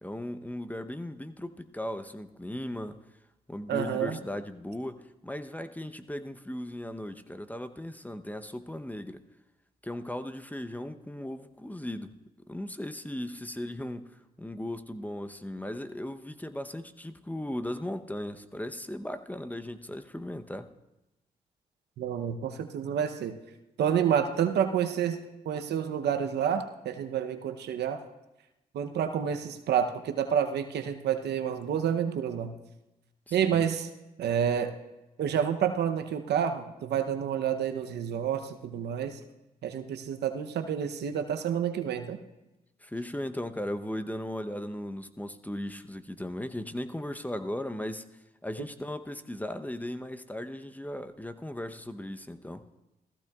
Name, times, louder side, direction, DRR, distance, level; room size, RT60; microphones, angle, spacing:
voice 1, 0.0-3.0 3.5-9.2 9.8-12.1 12.5-14.1 14.4-20.7 33.3-33.6 42.8-48.0 48.4-52.6, left 1 dB, 10° left, 9 dB, 0.8 m, -37 dB
voice 2, 3.7-4.2 22.0-23.4 23.8-25.2 25.5-28.0 28.7-32.6 33.3-33.9 34.2-34.7 35.2-39.2 39.6-42.2, right 8 dB, 80° right, 8 dB, 0.8 m, -29 dB
17.0 x 14.5 x 2.4 m, 0.97 s
supercardioid pair, 45°, 17 cm